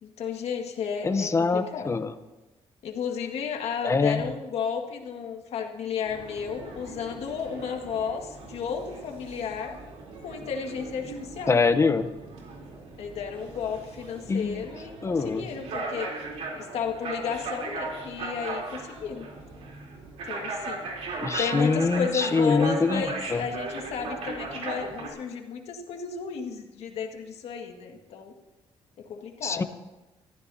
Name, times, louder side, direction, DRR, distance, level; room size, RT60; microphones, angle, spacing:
voice 1, 0.0-1.9 2.8-9.7 10.2-11.6 13.0-16.1 16.5-19.3 20.2-20.9 21.4-28.3 29.0-29.6, left 6 dB, 75° left, 3 dB, 1.9 m, -33 dB
voice 2, 1.0-2.1 3.8-4.2 11.5-12.1 14.3-14.6 15.0-15.4 21.2-23.4 29.4-29.6, left 4 dB, 25° left, 10 dB, 0.8 m, -24 dB
sound 1, 6.0-25.1, right 3 dB, 80° right, 3.4 m, -38 dB
24.0 x 14.5 x 2.8 m, 1.1 s
cardioid pair, 125°, 11 cm